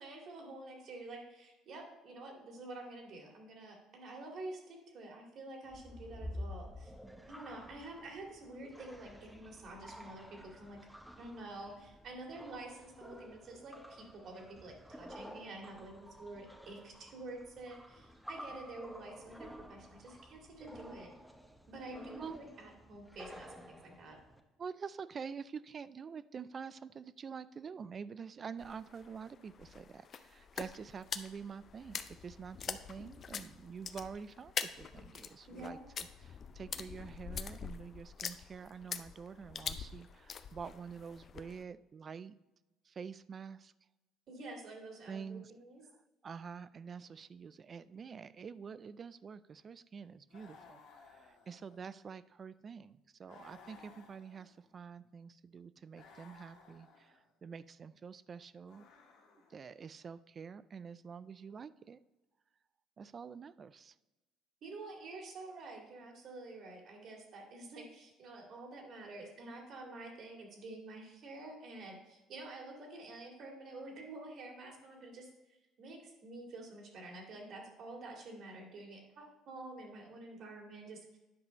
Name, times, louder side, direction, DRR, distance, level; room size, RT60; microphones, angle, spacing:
voice 1, 0.0-6.9 7.3-10.8 11.1-21.1 21.7-24.2 35.5-35.8 44.3-45.8 64.6-81.2, right 2 dB, 55° right, 1 dB, 2.1 m, -48 dB
sound 1, 5.7-24.4, equal, 5° right, 0.8 m, -51 dB
voice 2, 24.6-42.3 42.8-43.7 45.1-45.5 45.9-46.0 46.2-58.9 59.5-62.0 63.0-63.9, right 6 dB, 40° right, 17 dB, 0.3 m, -47 dB
sound 2, 28.6-41.6, left 7 dB, 45° left, 0.5 m, -44 dB
sound 3, 50.3-52.1 53.2-54.8 55.9-57.3 58.6-59.7, left 5 dB, 80° left, 1.5 m, -59 dB
9.5 x 5.4 x 4.0 m, 1.1 s
cardioid pair, 100°, 0 cm